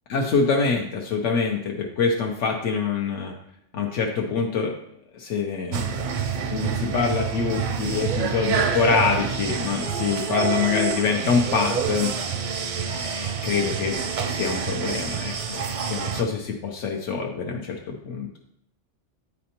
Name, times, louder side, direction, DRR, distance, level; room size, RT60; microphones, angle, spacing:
voice 1, 0.1-3.3 3.7-4.7 5.1-18.3, left 5 dB, 85° left, 1 dB, 1.0 m, -25 dB
sound 1, 5.7-16.2, right 6 dB, 55° right, 0.5 m, -27 dB
8.5 x 4.2 x 2.9 m, 0.76 s
omnidirectional pair, 1.2 m